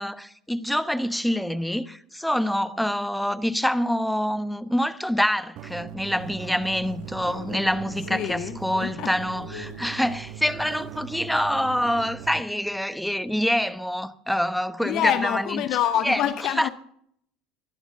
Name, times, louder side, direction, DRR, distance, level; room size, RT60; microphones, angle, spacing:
voice 1, 0.0-15.6 16.0-16.2 16.6-16.7, equal, ahead, 1.0 m, -26 dB
sound 1, 5.6-12.4, right 13 dB, 50° right, 1.0 m, -40 dB
sound 2, 6.0-11.1, left 4 dB, 70° left, 3.9 m, -45 dB
voice 2, 8.1-9.1 14.8-16.7, left 10 dB, 50° left, 0.8 m, -26 dB
22.5 x 11.5 x 3.7 m
figure-of-eight pair, 70°, 0 cm